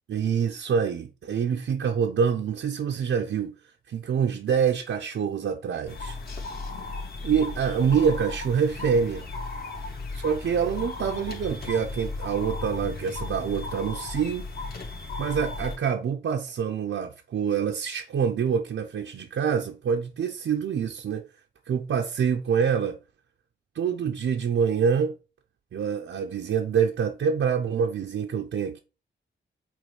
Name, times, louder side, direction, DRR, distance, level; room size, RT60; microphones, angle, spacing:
voice 1, 0.1-3.6 3.9-6.2 7.2-9.3 10.1-14.4 15.2-21.3 21.7-23.0 23.7-25.1 25.7-28.8, right 7 dB, 80° right, 0.8 m, -26 dB
sound 1, 5.9-15.8, left 3 dB, 50° left, 2.3 m, -35 dB
8.5 x 3.4 x 5.4 m
wide cardioid pair, 150°, 20 cm